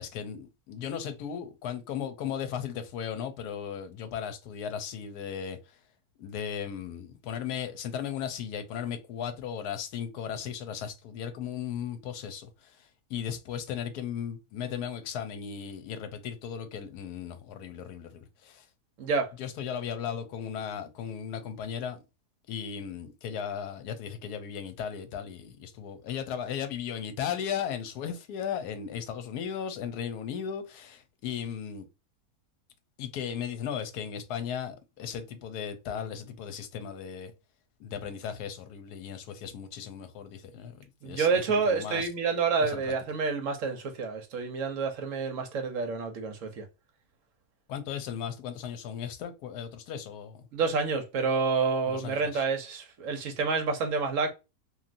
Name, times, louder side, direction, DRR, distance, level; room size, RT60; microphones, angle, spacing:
voice 1, 0.0-5.8 6.2-18.7 19.4-22.0 22.5-31.9 33.0-37.3 37.8-42.1 42.6-42.9 47.7-50.5 51.9-52.4, left 8 dB, 80° left, 1.2 m, -36 dB
voice 2, 19.0-19.3 41.0-46.6 50.5-54.3, right 4 dB, 65° right, 0.9 m, -28 dB
3.1 x 2.6 x 2.4 m
omnidirectional pair, 1.7 m